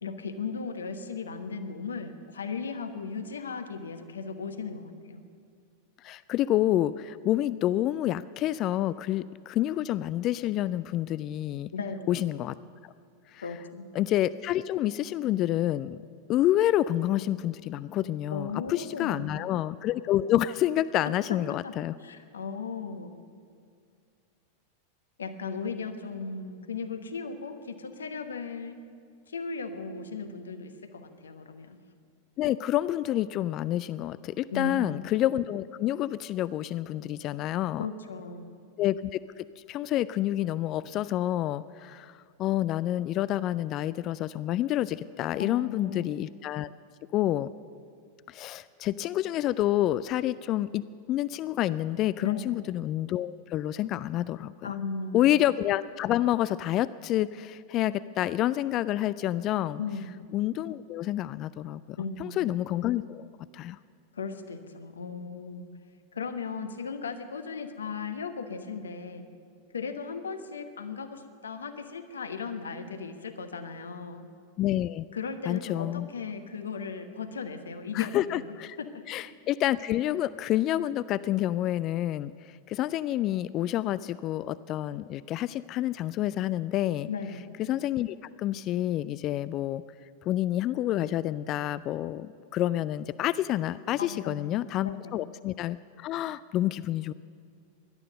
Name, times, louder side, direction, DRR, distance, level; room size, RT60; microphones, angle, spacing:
voice 1, 0.0-5.2 11.7-12.1 13.4-13.8 18.3-19.6 21.6-21.7 22.0-23.1 25.2-28.8 29.3-31.8 34.5-35.0 37.8-38.4 45.4-46.1 52.2-52.6 54.6-55.3 59.8-60.1 62.0-62.4 64.1-65.7 66.1-69.2 69.7-74.3 75.1-78.9 87.1-87.4 94.0-95.2, left 5 dB, 70° left, 9 dB, 1.1 m, -37 dB
voice 2, 6.0-11.7 12.1-12.5 13.3-13.4 14.0-16.0 16.3-21.9 32.4-37.9 38.8-42.1 42.4-46.7 47.1-47.5 48.3-54.7 55.1-59.8 60.3-63.3 63.5-63.8 74.6-75.1 75.5-76.1 77.9-78.8 79.1-82.3 82.7-87.1 87.6-89.8 90.3-97.1, left 13 dB, 35° left, 17 dB, 0.3 m, -28 dB
17.5 x 11.5 x 6.6 m, 2.2 s
figure-of-eight pair, 90°, 0 cm